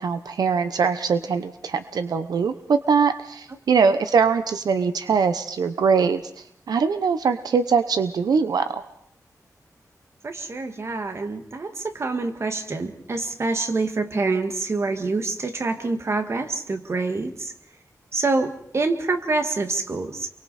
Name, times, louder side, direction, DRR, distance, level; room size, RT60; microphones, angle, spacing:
voice 1, 0.0-6.2 6.7-8.8, right 5 dB, 90° right, 10 dB, 0.9 m, -22 dB
voice 2, 10.2-17.5 18.1-20.3, right 3 dB, 45° right, 7 dB, 1.8 m, -26 dB
28.5 x 23.5 x 4.2 m, 0.65 s
wide cardioid pair, 125°, 7 cm